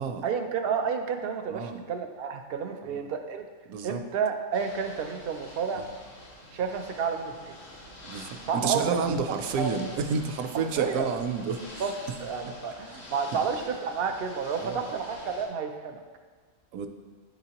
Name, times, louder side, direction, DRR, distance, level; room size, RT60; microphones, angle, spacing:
voice 1, 0.2-3.4 3.8-5.8 6.5-7.5 8.5-9.0 9.6-9.7 10.5-11.1 11.8-11.9 12.2-16.0, right 6 dB, 65° right, 6 dB, 0.6 m, -30 dB
voice 2, 1.5-1.8 2.8-3.0 3.7-4.0 5.7-5.9 8.0-11.8 12.9-13.0 14.6-14.9 16.7-16.9, right 5 dB, 80° right, 6 dB, 1.0 m, -30 dB
Ocean / Boat Water vehicle, 4.5-15.5, left 1 dB, 70° left, 1.5 m, -46 dB
10.0 x 3.9 x 2.9 m, 1.5 s
omnidirectional pair, 1.4 m